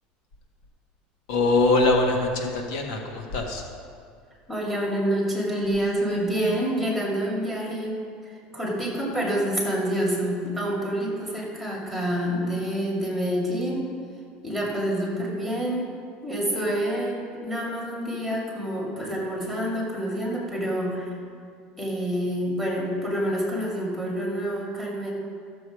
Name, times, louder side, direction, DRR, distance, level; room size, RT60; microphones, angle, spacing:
voice 1, 1.3-3.6, left 2 dB, 80° left, 2 dB, 1.5 m, -23 dB
voice 2, 4.5-8.0 8.5-13.8 14.4-15.9 16.2-21.1 21.8-25.1, equal, 5° left, -4 dB, 2.3 m, -27 dB
13.5 x 7.0 x 4.9 m, 2.3 s
cardioid pair, 155°, 3 cm